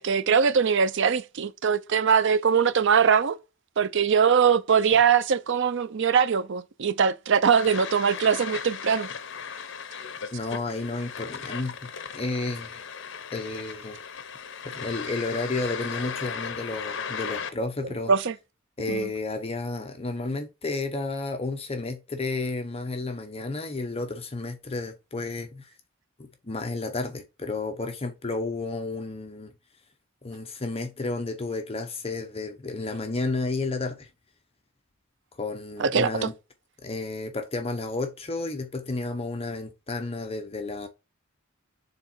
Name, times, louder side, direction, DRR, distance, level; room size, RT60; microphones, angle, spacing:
voice 1, 0.0-3.4 3.8-9.1 18.1-18.3 18.9-19.1 35.8-36.3, right 6 dB, 65° right, 0.5 m, -22 dB
sound 1, 7.6-17.5, left 6 dB, 65° left, 0.9 m, -36 dB
voice 2, 10.3-12.8 13.3-14.0 14.6-18.1 18.8-25.7 26.4-29.5 30.2-34.1 35.4-36.3 36.8-40.9, left 3 dB, 30° left, 0.8 m, -32 dB
6.8 x 3.7 x 4.4 m
head